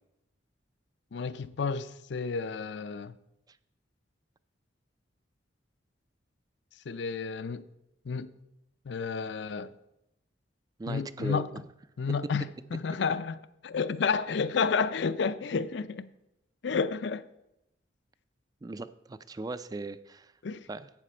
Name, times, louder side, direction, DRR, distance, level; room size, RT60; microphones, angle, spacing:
voice 1, 1.1-3.1 6.9-7.6 8.1-8.3 8.9-9.7 10.9-11.5 12.0-13.4 13.6-16.1 16.6-17.3 20.4-20.7, left 5 dB, 65° left, 0.5 m, -31 dB
voice 2, 10.8-11.6 18.6-20.3 20.7-20.9, right 3 dB, 20° right, 0.3 m, -38 dB
11.5 x 8.4 x 4.3 m
head